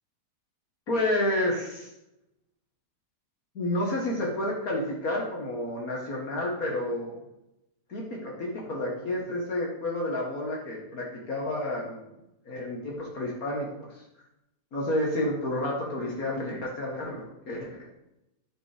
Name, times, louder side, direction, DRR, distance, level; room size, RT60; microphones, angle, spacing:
voice 1, 0.9-1.9 3.6-7.2 7.9-12.0 12.5-14.0 14.7-18.0, left 1 dB, 60° left, -2 dB, 1.9 m, -30 dB
12.0 x 4.8 x 5.0 m, 0.89 s
omnidirectional pair, 1.8 m